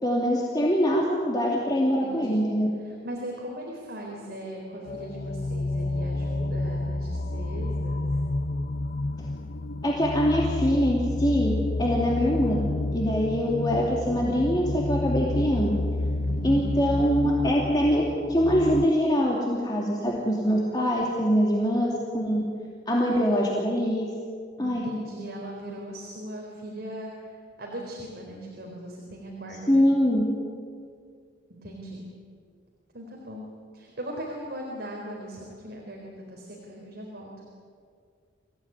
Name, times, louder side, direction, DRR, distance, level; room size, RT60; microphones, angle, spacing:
voice 1, 0.0-2.7 9.8-12.7 12.9-15.7 16.4-18.0 18.3-22.5 22.9-24.1 24.6-24.8 29.7-30.3, equal, 20° left, -3 dB, 2.8 m, -23 dB
voice 2, 2.0-2.5 2.8-8.0 16.1-17.0 24.6-27.3 27.6-29.8 31.5-32.0 32.9-33.5 33.7-37.5, right 1 dB, 55° right, -1 dB, 4.1 m, -39 dB
sound 1, 4.9-18.9, left 2 dB, 50° left, 0.7 m, -30 dB
26.0 x 16.5 x 9.9 m, 2.2 s
head